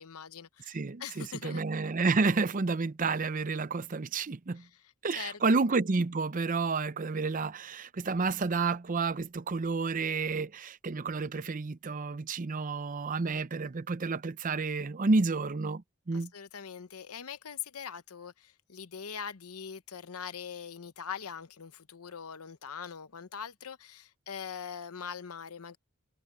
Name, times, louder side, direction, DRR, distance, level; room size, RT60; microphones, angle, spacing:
voice 1, 0.0-1.7 4.6-4.7 5.2-5.4 16.1-25.8, left 7 dB, 80° left, 0.9 m, -42 dB
voice 2, 0.7-4.6 5.0-16.3, right 4 dB, 35° right, 0.6 m, -30 dB
head